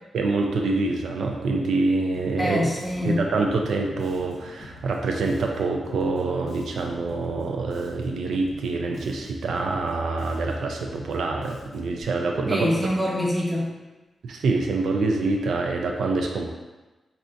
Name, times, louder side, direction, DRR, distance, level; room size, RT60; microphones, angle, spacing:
voice 1, 0.1-2.7 3.0-12.7 14.2-16.5, right 3 dB, 80° right, 2 dB, 0.3 m, -26 dB
Bass guitar, 2.1-12.0, left 2 dB, 55° left, 0.5 m, -46 dB
voice 2, 2.4-3.2 12.5-13.7, left 1 dB, ahead, -4 dB, 0.5 m, -25 dB
2.5 x 2.3 x 3.7 m, 1.2 s
wide cardioid pair, 160°, 0 cm